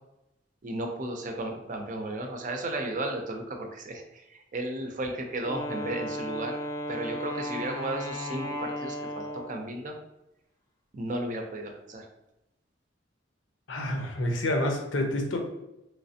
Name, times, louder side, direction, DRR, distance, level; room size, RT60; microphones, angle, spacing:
voice 1, 0.6-6.6 6.9-9.9 10.9-12.1, right 1 dB, 45° right, 3 dB, 0.5 m, -34 dB
Wind instrument woodwind instrument, 5.4-9.8, left 1 dB, 15° left, 0.3 m, -35 dB
voice 2, 13.7-15.4, left 1 dB, 80° left, 2 dB, 0.7 m, -28 dB
3.2 x 3.2 x 2.7 m, 0.89 s
head